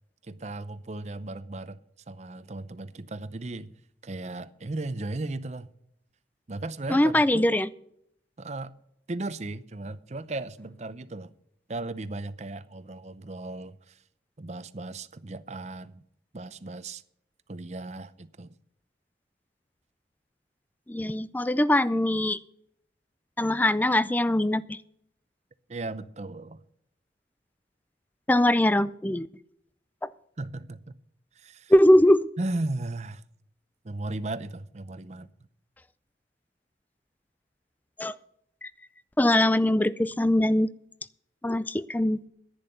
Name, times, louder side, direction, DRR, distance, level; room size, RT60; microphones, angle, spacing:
voice 1, 0.2-1.8 2.1-3.8 4.0-5.7 6.5-7.6 8.4-8.7 9.1-11.3 11.7-14.0 14.4-16.0 16.3-17.0 17.5-18.6 25.7-26.6 30.4-30.8 31.3-31.7 32.4-33.2 33.8-35.3, right 2 dB, 40° right, 0.6 m, -36 dB
voice 2, 6.9-7.7 20.9-22.4 23.4-24.8 28.3-29.3 30.0-30.1 31.7-32.2 38.0-38.1 38.6-38.7 39.2-40.7 41.4-42.2, left 1 dB, 10° left, 0.4 m, -22 dB
11.0 x 9.6 x 6.7 m
head